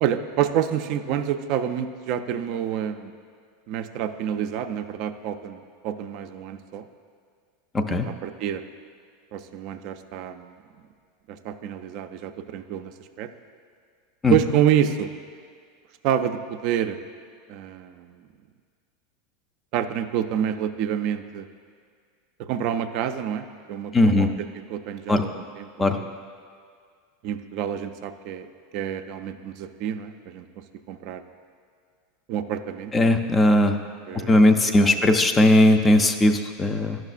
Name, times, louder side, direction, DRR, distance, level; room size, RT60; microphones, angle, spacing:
voice 1, 0.0-3.1 3.7-6.8 7.9-8.6 9.3-10.5 11.3-13.3 14.3-15.1 16.0-17.0 17.5-18.1 19.7-21.5 22.5-24.3 24.7-26.1 27.2-28.5 28.7-31.2 32.3-33.2 34.1-35.0, right 9 dB, 55° right, 8 dB, 0.3 m, -28 dB
voice 2, 7.7-8.1 14.2-14.3 23.9-24.3 25.1-25.3 25.8-26.0 32.9-33.8 34.1-37.0, left 1 dB, 20° left, 7 dB, 0.4 m, -18 dB
10.5 x 6.0 x 2.4 m, 2.1 s
hypercardioid pair, 110°, 0 cm